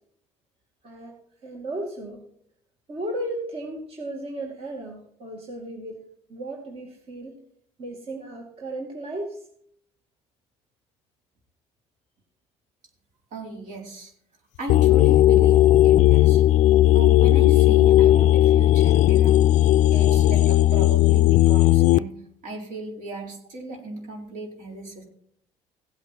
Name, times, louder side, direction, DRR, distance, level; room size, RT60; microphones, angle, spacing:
voice 1, 0.8-1.1 1.4-2.3 2.9-7.4 7.8-9.5, right 1 dB, 45° right, 0 dB, 2.3 m, -35 dB
voice 2, 13.3-14.1 14.6-16.4 16.9-19.4 19.9-22.2 22.4-25.0, right 3 dB, 65° right, 0 dB, 4.4 m, -36 dB
sound 1, 14.7-22.0, left 14 dB, 65° left, 0.4 m, -16 dB
16.0 x 8.5 x 4.5 m, 0.67 s
supercardioid pair, 85°, 14 cm